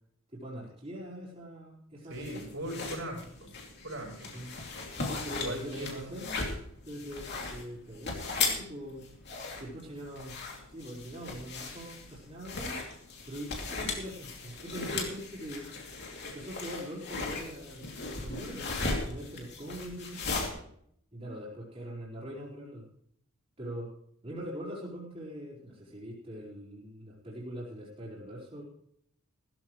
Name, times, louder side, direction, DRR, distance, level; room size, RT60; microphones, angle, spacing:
voice 1, 0.3-2.5 4.3-4.5 5.1-6.3 6.8-9.0 9.6-10.3 10.7-12.8 13.2-15.7 16.3-17.9 18.2-20.5 21.1-22.9 23.6-23.9 24.2-28.6, equal, 30° right, -7 dB, 4.3 m, -42 dB
sound 1, 2.1-20.5, left 3 dB, 50° left, 2.8 m, -37 dB
voice 2, 2.1-3.5 3.8-4.4 5.3-6.1, right 1 dB, 65° right, -2 dB, 6.3 m, -39 dB
16.5 x 14.0 x 3.2 m, 0.67 s
head